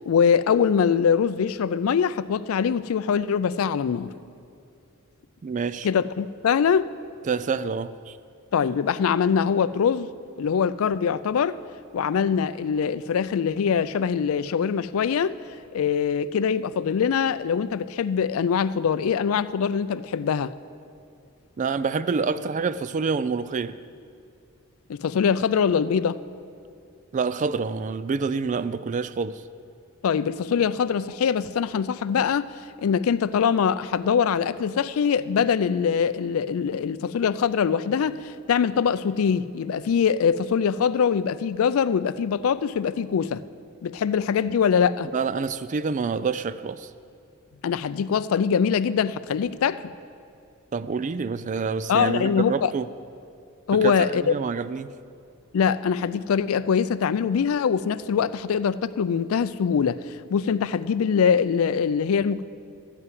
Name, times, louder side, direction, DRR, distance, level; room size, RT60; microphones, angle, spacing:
voice 1, 0.0-4.1 5.8-6.9 8.5-10.1 10.4-11.6 11.9-15.4 15.7-20.5 24.9-26.2 30.0-32.5 32.8-43.4 43.8-45.1 47.6-49.9 51.9-52.7 53.7-54.3 55.5-62.4, left 7 dB, 75° left, 16 dB, 0.4 m, -23 dB
voice 2, 5.4-5.9 7.3-8.1 21.6-23.8 27.1-29.4 45.1-46.9 50.7-52.8 53.8-54.9, right 5 dB, 35° right, 14 dB, 0.3 m, -27 dB
13.5 x 5.6 x 9.4 m, 2.4 s
head